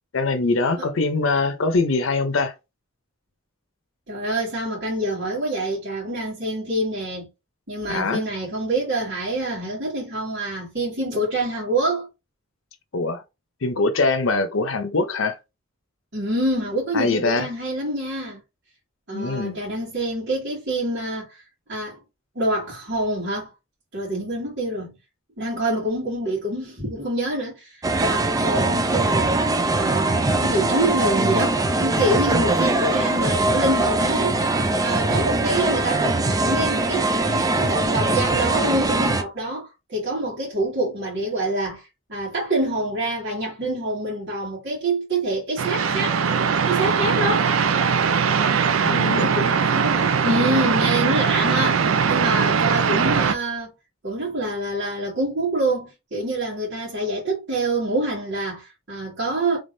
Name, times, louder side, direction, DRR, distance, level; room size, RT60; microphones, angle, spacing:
voice 1, 0.1-2.5 7.9-8.2 12.9-13.2 13.6-15.4 16.9-17.5 19.1-19.6 48.8-49.3, left 3 dB, 75° left, 0.7 m, -23 dB
voice 2, 4.1-7.3 7.7-12.1 16.1-18.4 19.1-21.4 21.7-22.0 22.3-23.5 23.9-24.9 25.4-29.3 29.8-34.3 34.8-46.4 46.7-47.5 49.1-53.7 54.0-59.6, right 1 dB, 60° right, 2.1 m, -26 dB
sound 1, 27.8-39.2, right 2 dB, 20° right, 0.4 m, -21 dB
sound 2, 45.6-53.3, right 6 dB, 90° right, 0.5 m, -21 dB
3.5 x 3.5 x 2.6 m
head